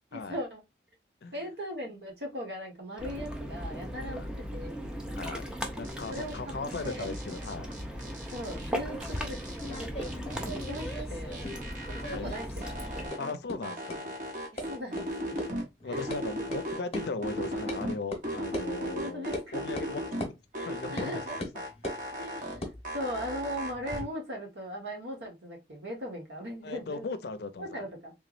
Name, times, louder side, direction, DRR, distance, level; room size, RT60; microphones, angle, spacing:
voice 1, 0.1-0.6 1.3-4.9 6.1-6.5 6.8-7.1 8.3-9.4 9.7-11.4 11.9-12.4 12.9-13.2 14.5-15.4 15.8-16.1 16.4-16.5 18.8-19.7 20.5-21.4 22.1-27.1 27.6-28.1, equal, 75° right, 1.4 m, -39 dB
Ocean, 3.0-13.1, equal, 5° right, 0.5 m, -38 dB
voice 2, 5.8-7.7 12.1-12.4 13.2-14.1 15.8-20.3 20.6-21.1 21.5-21.6 26.6-27.9, left 3 dB, 70° left, 0.5 m, -38 dB
sound 1, 5.8-6.4 6.7-8.7 9.0-11.0 11.3-13.3 13.6-15.6 15.9-17.9 18.2-20.2 20.5-22.6 22.8-24.0, equal, 45° right, 1.1 m, -37 dB
sound 2, 8.9-11.8 12.0-12.8 13.1-13.2 13.5-13.6 13.9-14.0 14.6-14.7 15.0-15.1 15.4-15.5 15.8-16.2 16.5-16.6 16.9-17.0 17.7-17.8 18.1-18.2 18.5-18.7 19.3-19.5 19.8-19.9 20.2-20.3 21.0-21.1 21.4-22.0 22.5-24.1, left 1 dB, 35° left, 1.0 m, -38 dB
3.5 x 3.0 x 2.5 m
head